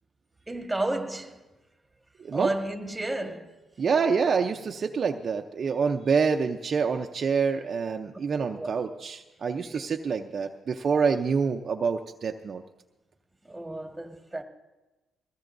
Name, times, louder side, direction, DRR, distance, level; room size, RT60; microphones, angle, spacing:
voice 1, 0.5-1.4 2.3-3.5 8.5-9.0 9.6-9.8 13.5-14.4, right 2 dB, 10° right, 1.5 m, -32 dB
voice 2, 3.8-12.6, right 5 dB, 45° right, 0.6 m, -26 dB
21.5 x 16.5 x 2.6 m
cardioid pair, 90°, 0 cm